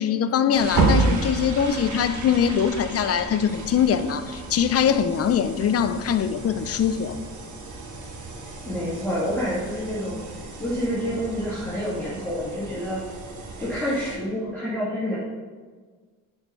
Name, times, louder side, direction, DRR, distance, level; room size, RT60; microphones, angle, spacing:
voice 1, 0.0-7.2, left 8 dB, 45° left, 0.5 m, -22 dB
sound 1, 0.5-14.2, right 3 dB, 55° right, 1.2 m, -31 dB
voice 2, 8.7-13.0 13.6-15.2, equal, 5° left, 2.3 m, -28 dB
6.8 x 4.5 x 5.5 m
cardioid pair, 115°, 34 cm